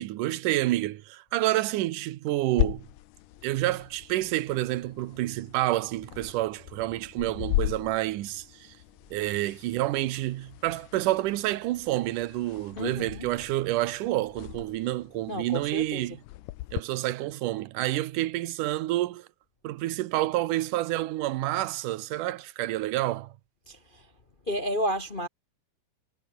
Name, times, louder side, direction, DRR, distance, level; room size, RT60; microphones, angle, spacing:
voice 1, 0.0-2.9 3.4-8.8 9.1-16.2 16.7-19.3 19.6-23.4, right 16 dB, 80° right, 2.5 m, -29 dB
sound 1, 2.6-16.8, left 17 dB, 90° left, 2.4 m, -37 dB
voice 2, 12.8-13.3 15.3-16.0 23.7-23.8 24.5-25.3, equal, 35° left, 0.7 m, -31 dB
omnidirectional pair, 3.7 m